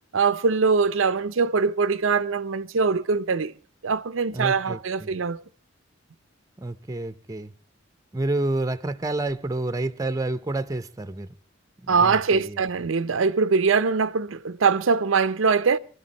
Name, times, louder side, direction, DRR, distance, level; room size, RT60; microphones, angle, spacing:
voice 1, 0.1-3.5 3.8-5.4 11.9-15.8, right 5 dB, 80° right, 0.6 m, -22 dB
voice 2, 4.3-5.1 6.6-7.5 8.1-11.3 11.8-12.6, right 2 dB, 15° right, 0.7 m, -29 dB
25.5 x 13.0 x 3.0 m
head